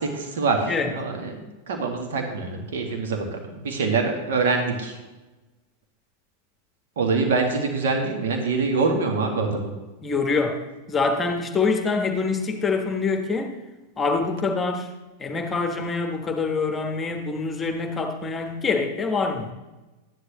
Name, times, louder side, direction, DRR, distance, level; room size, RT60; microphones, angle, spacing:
voice 1, 0.0-1.4 1.7-5.0 7.0-9.7, right 4 dB, 60° right, 3 dB, 1.7 m, -25 dB
voice 2, 10.0-10.6 10.9-13.5 14.0-14.9 15.2-19.5, left 4 dB, 20° left, 5 dB, 1.2 m, -25 dB
13.0 x 9.9 x 3.0 m, 1.1 s
figure-of-eight pair, 90°, 0 cm